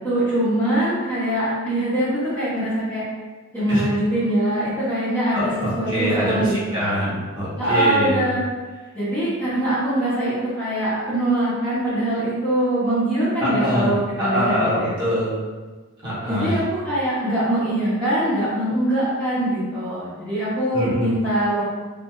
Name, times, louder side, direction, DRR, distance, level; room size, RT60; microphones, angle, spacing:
voice 1, 0.0-3.0 3.5-6.9 7.6-8.5 8.9-15.0 16.3-21.6, right 1 dB, 5° left, -13 dB, 0.8 m, -23 dB
voice 2, 5.3-8.3 13.4-15.5 16.0-16.6 20.7-21.1, equal, 20° right, -10 dB, 1.0 m, -24 dB
3.3 x 2.5 x 2.3 m, 1.3 s
head